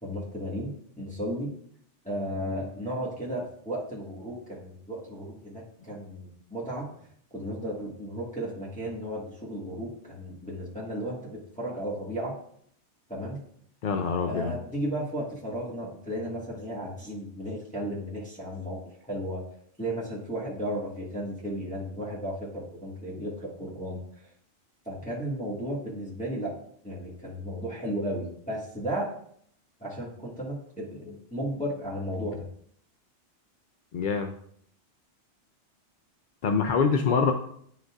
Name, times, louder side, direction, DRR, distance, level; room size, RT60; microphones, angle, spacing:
voice 1, 0.0-1.5 2.0-6.9 7.3-12.3 13.1-13.4 14.2-19.4 19.8-24.3 24.8-26.5 26.8-29.1 29.8-32.4 37.1-37.3, equal, 5° left, -6 dB, 1.5 m, -34 dB
voice 2, 13.8-14.5 33.9-34.3 36.4-37.3, left 5 dB, 60° left, 5 dB, 0.6 m, -25 dB
9.8 x 5.2 x 2.4 m, 0.66 s
omnidirectional pair, 1.2 m